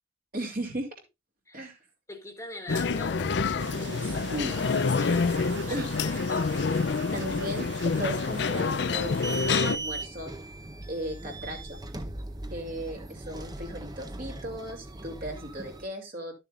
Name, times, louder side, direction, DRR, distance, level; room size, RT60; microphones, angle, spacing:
voice 1, 0.3-0.9 1.5-1.8 4.0-4.6 5.7-5.9 7.1-10.3 10.9-11.8 12.5-16.3, equal, 50° right, 2.9 m, -36 dB
voice 2, 2.1-3.3 3.7-4.5 4.7-5.3 5.7-6.5, left 1 dB, 15° left, 1.4 m, -43 dB
sound 1, 2.7-9.8, left 4 dB, 65° left, 0.5 m, -27 dB
sound 2, 3.6-9.3, right 7 dB, 75° right, 0.6 m, -42 dB
sound 3, 9.0-15.9, right 2 dB, 20° right, 0.8 m, -39 dB
12.5 x 6.9 x 2.5 m
head